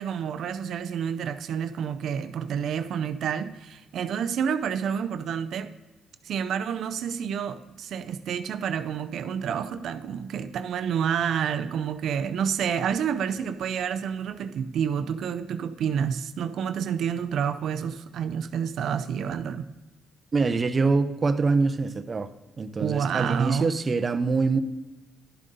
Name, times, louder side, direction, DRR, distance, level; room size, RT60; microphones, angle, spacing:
voice 1, 0.0-5.7 6.2-19.6 22.8-23.7, right 7 dB, 70° right, 0.5 m, -29 dB
voice 2, 20.3-22.3 22.6-24.6, right 4 dB, 35° right, 0.7 m, -24 dB
11.5 x 7.4 x 4.0 m
cardioid pair, 90°, 0 cm